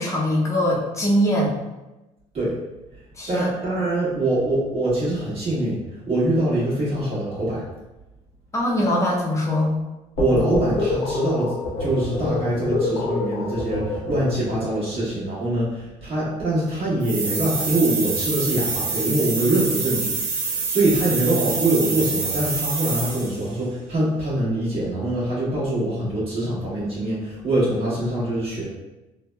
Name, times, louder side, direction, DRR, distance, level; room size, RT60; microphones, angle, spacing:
voice 1, 0.0-1.5 3.2-3.5 8.5-9.8, equal, 20° left, -3 dB, 0.7 m, -22 dB
voice 2, 3.3-7.6 10.2-11.5 11.8-20.1 20.4-28.7, right 1 dB, 45° right, -9 dB, 1.4 m, -24 dB
sound 1, 10.2-14.6, left 2 dB, 70° left, 0.9 m, -26 dB
sound 2, 17.0-23.5, right 4 dB, 85° right, 0.6 m, -26 dB
3.3 x 2.1 x 2.2 m, 1.0 s
cardioid pair, 115°, 14 cm